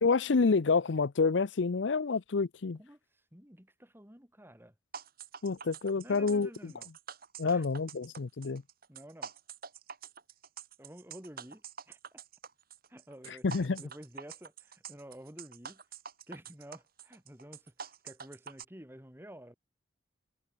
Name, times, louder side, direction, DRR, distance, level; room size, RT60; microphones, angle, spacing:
voice 1, 0.0-2.8 5.4-6.7 7.4-8.6 13.4-13.8, left 4 dB, 75° left, 0.6 m, -28 dB
voice 2, 2.8-4.7 5.9-6.9 7.4-7.7 8.9-9.3 10.8-12.2 12.9-15.8 16.3-19.6, equal, 10° right, 4.6 m, -51 dB
sound 1, 4.9-18.6, right 6 dB, 50° right, 3.5 m, -46 dB
head